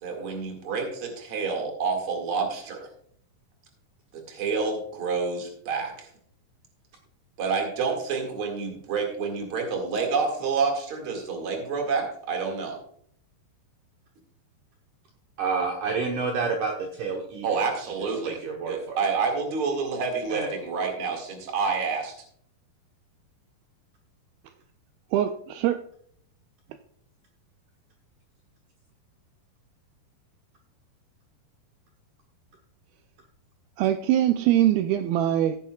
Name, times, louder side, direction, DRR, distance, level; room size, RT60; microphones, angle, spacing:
voice 1, 0.0-2.9 4.1-6.1 7.4-12.8 17.4-18.4 18.6-22.1, right 5 dB, 40° right, 2 dB, 2.4 m, -28 dB
voice 2, 15.4-17.7 18.3-19.0 20.3-20.5, right 4 dB, 65° right, 1 dB, 2.3 m, -29 dB
voice 3, 25.1-25.8 33.8-35.6, right 12 dB, 80° right, 8 dB, 2.3 m, -22 dB
15.0 x 10.0 x 2.4 m, 0.62 s
omnidirectional pair, 4.4 m